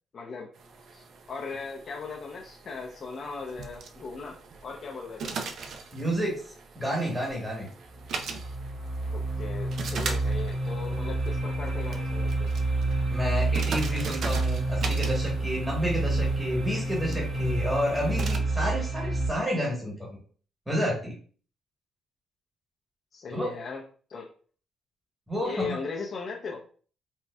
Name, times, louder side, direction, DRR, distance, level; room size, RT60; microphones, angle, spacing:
voice 1, 0.1-0.5 0.9-5.5 9.1-12.5 23.1-23.8 24.1-24.3 25.4-26.6, left 4 dB, 50° left, -1 dB, 0.5 m, -38 dB
sound 1, 0.5-18.4, right 4 dB, 65° right, 0.4 m, -41 dB
voice 2, 5.9-6.4 6.7-7.7 13.1-20.1 20.7-21.1 23.3-23.5 25.3-25.8, equal, 10° right, -3 dB, 1.1 m, -30 dB
sound 2, 7.9-19.3, right 2 dB, 35° right, 1.3 m, -29 dB
4.1 x 2.2 x 2.2 m, 0.43 s
cardioid pair, 90°, 0 cm